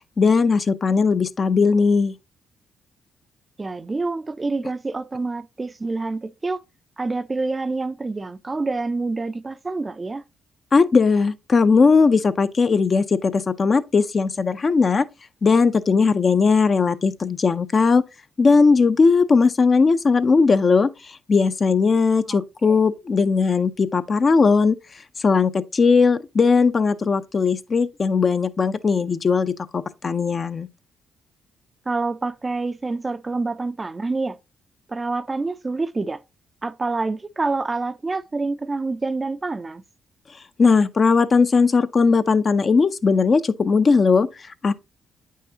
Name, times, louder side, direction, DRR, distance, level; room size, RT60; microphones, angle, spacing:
voice 1, 0.2-2.1 10.7-15.1 15.4-18.0 18.4-20.9 21.3-24.8 25.2-30.7 40.6-44.3 44.6-44.7, left 4 dB, 45° left, 0.5 m, -18 dB
voice 2, 3.6-6.6 7.0-10.2 22.2-22.4 22.7-22.8 31.9-34.4 34.9-36.2 36.6-39.8, right 3 dB, 30° right, 0.4 m, -27 dB
8.3 x 5.6 x 2.8 m
supercardioid pair, 65°, 0 cm